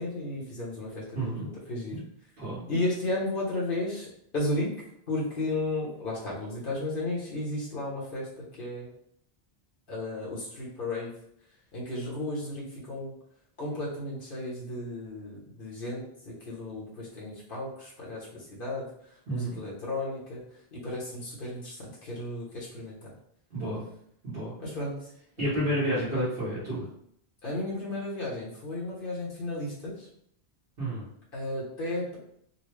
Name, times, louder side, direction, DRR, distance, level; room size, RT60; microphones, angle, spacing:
voice 1, 0.0-2.0 2.7-4.1 4.3-4.7 5.1-8.9 9.9-11.1 11.7-13.1 13.6-18.9 19.3-20.4 20.7-23.1 24.6-25.0 25.4-25.7 27.4-30.1 31.3-32.2, left 2 dB, 60° left, -5 dB, 1.3 m, -34 dB
voice 2, 1.1-1.5 1.9-2.0 2.4-2.6 19.3-19.6 23.5-23.8 24.2-24.5 25.4-26.8 30.8-31.1, right 1 dB, 65° right, -11 dB, 1.5 m, -30 dB
4.0 x 2.3 x 3.2 m, 0.71 s
omnidirectional pair, 1.1 m